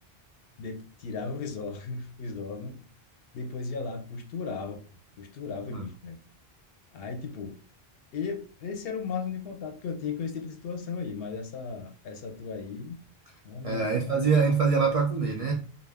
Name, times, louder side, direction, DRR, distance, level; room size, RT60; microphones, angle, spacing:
voice 1, 0.6-2.9 3.3-4.8 5.2-6.2 6.9-7.6 8.1-13.0 13.4-14.1, left 5 dB, 70° left, 0.8 m, -36 dB
voice 2, 13.6-15.5, right 5 dB, 55° right, 0.4 m, -24 dB
2.4 x 2.1 x 3.3 m
omnidirectional pair, 1.0 m